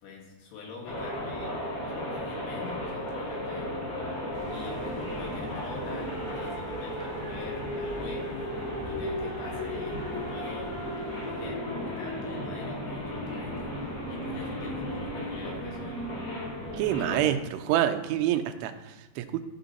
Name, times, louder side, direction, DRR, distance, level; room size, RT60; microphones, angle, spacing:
voice 1, 0.0-3.8 4.5-8.5 8.8-10.8 11.2-16.0, left 4 dB, 75° left, -1 dB, 3.5 m, -44 dB
sound 1, 0.8-17.3, left 1 dB, 40° left, 3.3 m, -34 dB
sound 2, 4.3-11.5, right 3 dB, 20° right, 1.1 m, -46 dB
voice 2, 16.7-19.4, right 11 dB, 85° right, 8 dB, 2.7 m, -27 dB
12.5 x 4.4 x 4.0 m, 1.1 s
omnidirectional pair, 4.8 m